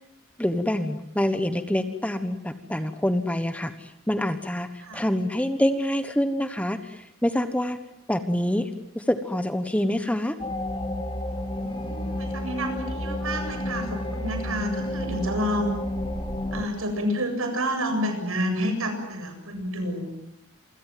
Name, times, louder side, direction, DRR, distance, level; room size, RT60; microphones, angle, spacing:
voice 1, 0.4-7.8 8.1-10.4, left 1 dB, 5° left, 9 dB, 1.2 m, -26 dB
sound 1, 10.4-16.7, left 1 dB, 25° left, 2.9 m, -31 dB
voice 2, 11.6-15.7 16.5-20.1, equal, 70° right, 6 dB, 7.7 m, -29 dB
28.0 x 25.5 x 7.6 m, 0.81 s
head